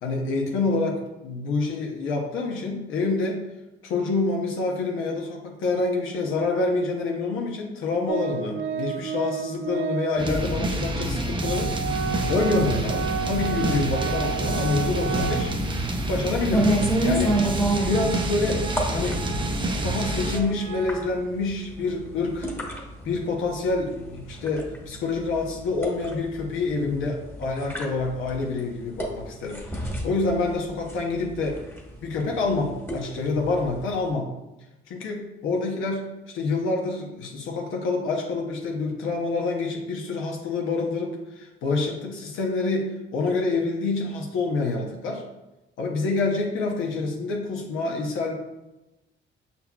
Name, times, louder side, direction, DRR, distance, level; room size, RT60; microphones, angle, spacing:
voice 1, 0.0-3.4 3.8-11.7 12.3-15.5 16.1-16.7 17.0-17.4 17.8-18.6 18.9-19.2 19.8-22.5 23.0-31.6 32.0-34.3 34.9-36.0 36.3-45.2 45.8-48.3, left 3 dB, 85° left, 0 dB, 0.8 m, -27 dB
Organ, 8.1-10.3 11.1-11.2 11.4-15.8 16.2-16.3 16.7-21.1, right 7 dB, 85° right, 0.4 m, -33 dB
sound 1, 10.2-20.4, right 1 dB, 25° right, 0.5 m, -27 dB
sound 2, 16.5-34.1, right 1 dB, 10° left, 1.1 m, -31 dB
5.6 x 4.1 x 2.3 m, 1.0 s
cardioid pair, 90°, 20 cm